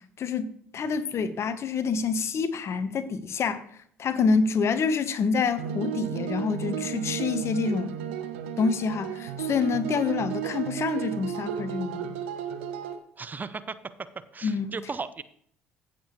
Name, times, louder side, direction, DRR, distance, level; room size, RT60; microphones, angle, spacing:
voice 1, 0.2-3.6 4.0-8.0 8.6-12.2 14.4-14.7, left 5 dB, 45° left, 1.1 m, -27 dB
sound 1, 5.6-13.0, right 9 dB, 75° right, 1.0 m, -33 dB
voice 2, 13.2-14.1 14.3-15.2, right 4 dB, 30° right, 0.7 m, -36 dB
15.0 x 7.8 x 3.1 m
figure-of-eight pair, 55°, 6 cm